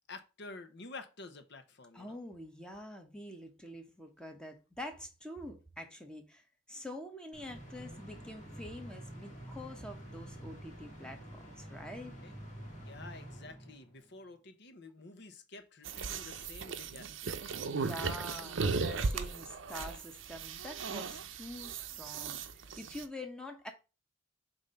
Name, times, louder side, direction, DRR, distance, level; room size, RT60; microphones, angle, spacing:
voice 1, 0.0-2.2 12.2-12.3 12.8-17.7, left 3 dB, 60° left, 0.9 m, -50 dB
voice 2, 1.9-12.1 17.6-23.7, left 1 dB, 5° left, 1.0 m, -46 dB
sound 1, 7.3-14.1, right 1 dB, 40° left, 2.2 m, -48 dB
sound 2, 15.8-23.0, right 4 dB, 75° right, 0.6 m, -37 dB
6.9 x 2.7 x 5.5 m
head